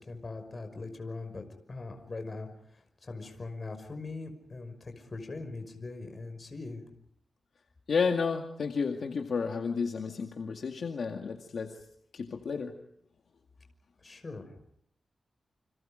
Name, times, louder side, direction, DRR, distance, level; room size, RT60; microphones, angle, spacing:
voice 1, 0.0-6.8 14.0-14.5, left 3 dB, 30° left, 6 dB, 5.7 m, -41 dB
voice 2, 7.9-11.7 12.1-12.7, left 5 dB, 60° left, 3 dB, 2.1 m, -31 dB
29.5 x 26.5 x 5.2 m, 0.67 s
wide cardioid pair, 135°, 0 cm